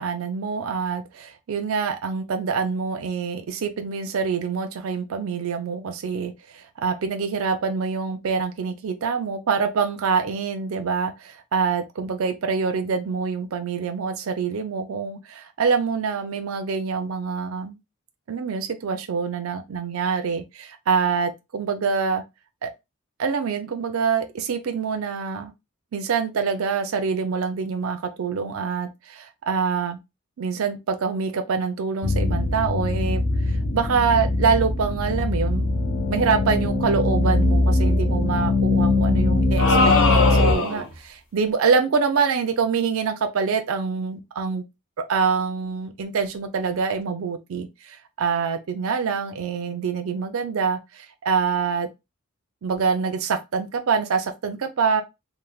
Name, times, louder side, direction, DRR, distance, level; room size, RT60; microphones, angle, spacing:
voice 1, 0.0-17.8 18.3-22.2 22.6-22.7 23.2-25.5 25.9-30.0 30.4-35.7 36.1-44.6 45.1-51.9 52.6-55.0, right 5 dB, 70° right, 0.4 m, -25 dB
sound 1, 32.0-40.6, left 2 dB, 40° left, 0.4 m, -22 dB
sound 2, 39.6-40.9, left 3 dB, 70° left, 1.0 m, -20 dB
3.1 x 2.1 x 2.3 m
head